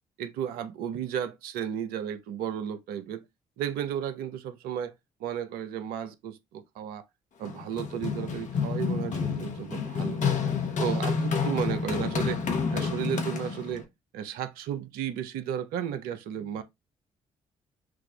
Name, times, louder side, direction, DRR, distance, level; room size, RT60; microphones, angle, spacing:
voice 1, 0.2-3.2 3.6-4.9 5.2-7.0 7.4-10.2 10.8-12.4 12.7-13.9 14.1-16.6, right 9 dB, 70° right, 0.6 m, -33 dB
Run, 7.4-13.8, left 5 dB, 50° left, 1.0 m, -29 dB
6.1 x 2.4 x 2.2 m
hypercardioid pair, 50°, 16 cm